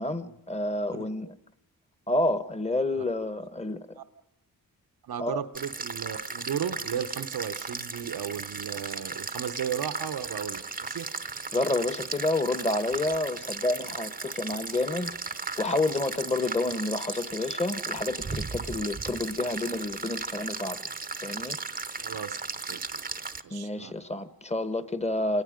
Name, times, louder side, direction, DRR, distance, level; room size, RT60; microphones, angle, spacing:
voice 1, 0.0-1.3 2.1-4.0 5.2-5.4 11.5-15.2 15.6-20.8 21.2-21.6 23.5-25.4, left 2 dB, 20° left, 12 dB, 1.1 m, -29 dB
voice 2, 5.0-11.1 22.0-22.4 22.7-23.0 23.4-23.9, right 8 dB, 85° right, 7 dB, 1.0 m, -35 dB
sound 1, 5.5-23.4, right 4 dB, 25° right, 0.7 m, -36 dB
27.0 x 19.0 x 5.1 m, 0.86 s
cardioid pair, 75°, 36 cm